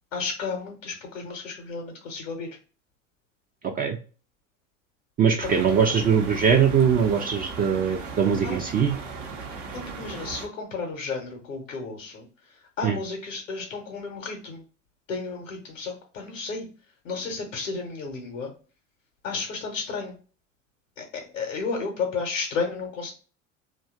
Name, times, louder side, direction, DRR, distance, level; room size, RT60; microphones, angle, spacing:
voice 1, 0.1-2.6 5.4-6.0 8.4-8.6 9.7-14.6 15.1-16.7 17.0-18.5 19.2-20.2 21.0-23.1, left 4 dB, 80° left, 2 dB, 0.7 m, -33 dB
voice 2, 3.6-4.0 5.2-9.0 12.8-13.0, right 7 dB, 25° right, 3 dB, 0.3 m, -21 dB
sound 1, 5.4-10.5, right 4 dB, 75° right, 0.8 m, -37 dB
2.7 x 2.3 x 2.3 m, 0.36 s
hypercardioid pair, 70°, 38 cm